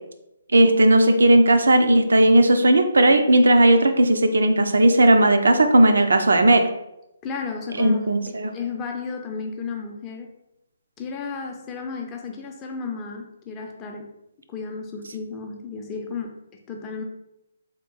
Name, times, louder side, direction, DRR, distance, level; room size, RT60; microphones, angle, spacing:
voice 1, 0.5-6.6 7.8-8.5, right 1 dB, 70° right, 7 dB, 0.4 m, -16 dB
voice 2, 7.2-8.0 8.3-10.3 11.0-14.1 14.5-16.4 16.7-17.0, left 5 dB, 20° left, 2 dB, 0.5 m, -33 dB
3.6 x 2.4 x 3.8 m, 0.88 s
figure-of-eight pair, 135°, 0 cm